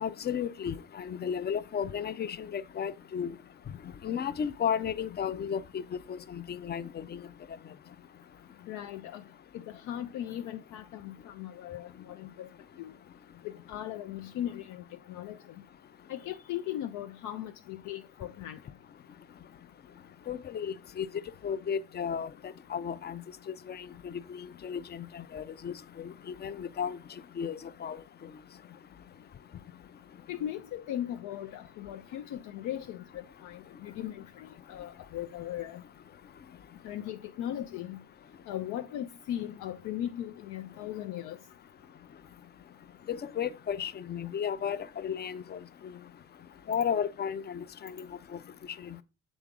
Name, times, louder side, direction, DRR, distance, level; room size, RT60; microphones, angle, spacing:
voice 1, 0.0-3.3 4.0-5.8 6.1-7.2 20.3-21.1 21.4-23.2 23.7-27.0 27.4-28.0 43.1-45.6 46.7-48.1 48.8-49.0, left 8 dB, 35° left, 0.4 m, -34 dB
voice 2, 8.7-9.2 9.5-12.5 12.8-12.9 13.4-15.4 16.1-18.6 30.3-35.8 36.8-38.0 38.5-41.4, left 11 dB, 85° left, 0.5 m, -38 dB
7.1 x 3.9 x 3.6 m
cardioid pair, 90°, 30 cm